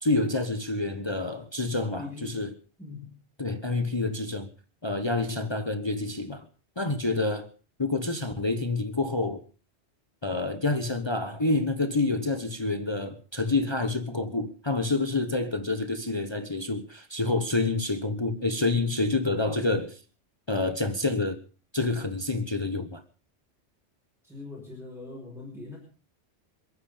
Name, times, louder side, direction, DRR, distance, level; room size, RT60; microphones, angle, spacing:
voice 1, 0.0-2.5 3.4-4.5 4.8-6.4 6.8-7.5 7.8-9.4 10.2-20.0 20.5-21.4 21.7-23.0, left 2 dB, 25° left, 1.2 m, -28 dB
voice 2, 2.0-2.5 2.8-3.2 24.2-25.8, left 3 dB, ahead, 5.4 m, -41 dB
27.5 x 9.6 x 5.1 m
omnidirectional pair, 1.1 m